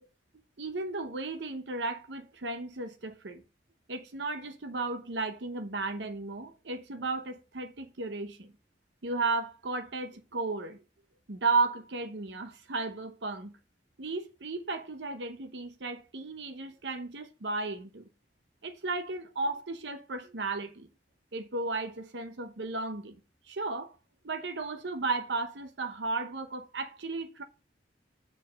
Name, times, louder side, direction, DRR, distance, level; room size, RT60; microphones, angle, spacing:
voice 1, 0.6-3.4 3.9-8.5 9.0-10.8 11.3-13.6 14.0-18.1 18.6-20.9 21.3-23.2 23.5-23.9 24.2-27.4, right 3 dB, 80° right, 0.9 m, -34 dB
6.4 x 4.5 x 6.4 m
head